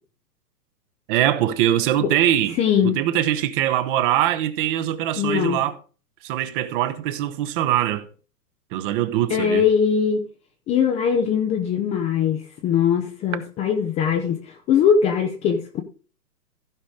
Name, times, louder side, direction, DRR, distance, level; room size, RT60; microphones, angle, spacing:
voice 1, 1.1-5.8 6.2-8.1 8.7-9.7, right 12 dB, 35° right, 1.0 m, -22 dB
voice 2, 2.6-3.0 5.2-5.6 9.3-10.3 10.7-14.4 14.7-15.8, left 7 dB, 15° left, 0.6 m, -21 dB
15.0 x 5.2 x 4.9 m
hypercardioid pair, 125°, 48 cm